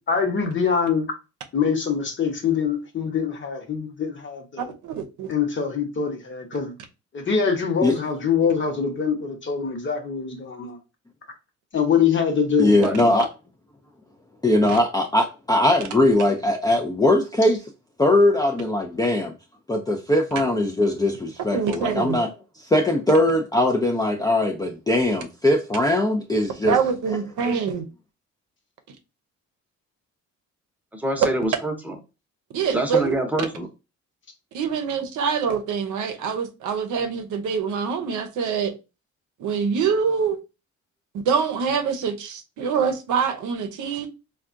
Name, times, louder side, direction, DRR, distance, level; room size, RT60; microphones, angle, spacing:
voice 1, 0.1-1.1 1.5-4.7 5.3-6.7 7.1-10.8 11.7-12.7, left 6 dB, 40° left, 1.0 m, -24 dB
voice 2, 4.6-5.3 14.7-14.8 21.5-22.2 26.6-27.9 32.5-33.1 34.5-38.7 39.4-40.4 41.2-44.1, right 6 dB, 75° right, 0.7 m, -25 dB
voice 3, 12.6-13.3 14.4-17.6 18.0-19.3 19.7-22.3 22.6-26.8 27.5-27.6, left 1 dB, 15° left, 0.4 m, -20 dB
voice 4, 30.9-31.9 32.7-33.7, right 1 dB, 5° right, 0.8 m, -25 dB
3.5 x 2.3 x 2.5 m
cardioid pair, 90°, 30 cm